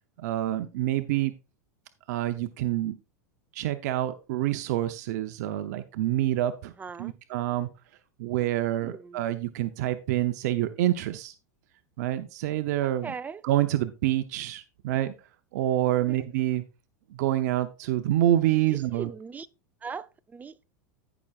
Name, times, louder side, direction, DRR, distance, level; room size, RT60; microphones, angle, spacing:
voice 1, 0.2-1.3 2.1-3.0 3.5-6.7 7.0-7.7 8.2-11.3 12.0-13.1 13.4-15.1 15.5-16.6 17.1-19.1, right 13 dB, 65° right, 0.7 m, -27 dB
voice 2, 6.8-7.1 8.8-9.3 13.0-13.4 16.1-16.2 18.7-19.5 19.8-20.6, right 5 dB, 15° right, 0.6 m, -39 dB
14.5 x 6.0 x 2.4 m
hypercardioid pair, 100°, 9 cm